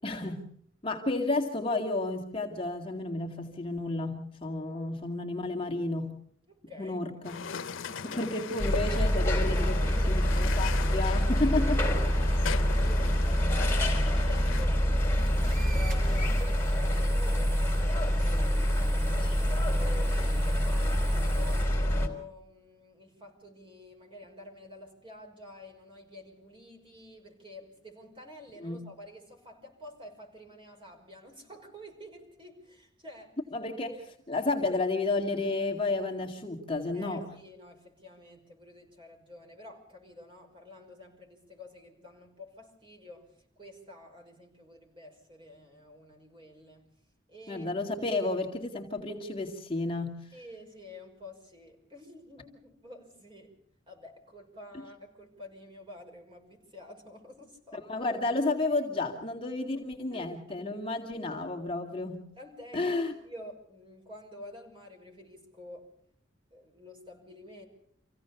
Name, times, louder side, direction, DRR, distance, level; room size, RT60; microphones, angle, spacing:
voice 1, 0.0-0.4 0.8-6.1 6.8-7.4 7.9-11.8 13.4-13.6 19.2-19.5 28.6-28.8 33.5-37.3 47.5-50.2 57.9-62.2 62.7-63.1, left 2 dB, 25° left, 1 dB, 2.1 m, -32 dB
voice 2, 6.5-7.0 7.8-8.2 9.5-10.1 11.4-11.7 12.0-18.3 18.8-33.4 36.9-43.3 43.6-46.8 47.3-47.7 50.3-53.5 53.9-57.9 60.1-60.6 62.4-65.9 66.5-67.6, left 1 dB, 25° right, 2 dB, 5.7 m, -49 dB
sound 1, 7.2-14.7, left 6 dB, 90° left, 0.8 m, -39 dB
sound 2, 8.6-22.1, equal, 10° left, 3.8 m, -26 dB
sound 3, 14.9-21.6, right 5 dB, 45° right, 6.7 m, -48 dB
27.0 x 16.5 x 7.0 m, 0.68 s
head